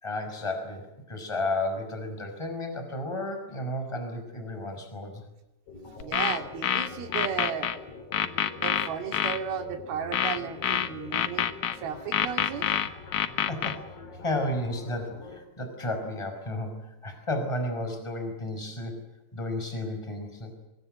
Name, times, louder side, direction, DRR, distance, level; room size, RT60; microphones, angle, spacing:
voice 1, 0.0-5.2 13.5-13.9 14.2-19.0 19.3-20.5, left 1 dB, 5° left, 6 dB, 5.3 m, -33 dB
sound 1, 5.7-15.4, left 4 dB, 40° left, 4.1 m, -45 dB
sound 2, 6.0-7.8 8.1-9.4 10.1-11.8 12.1-13.8, left 10 dB, 60° left, 2.3 m, -26 dB
voice 2, 6.0-7.7 8.5-11.5 11.7-12.7, right 7 dB, 70° right, 6 dB, 4.3 m, -34 dB
24.0 x 24.0 x 8.0 m, 0.93 s
omnidirectional pair, 4.6 m